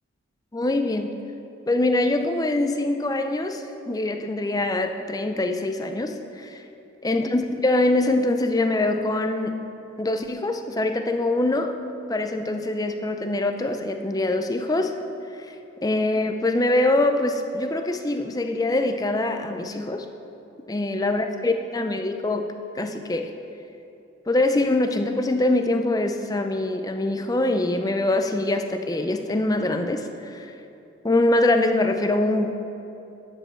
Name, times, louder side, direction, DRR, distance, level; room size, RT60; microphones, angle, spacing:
voice 1, 0.5-1.2 1.7-6.6 7.0-9.6 10.0-11.8 12.1-15.0 15.8-20.1 20.7-22.5 22.7-23.3 24.3-30.5 31.0-32.5, left 2 dB, 20° left, 6 dB, 0.4 m, -24 dB
11.5 x 5.3 x 6.2 m, 2.8 s
head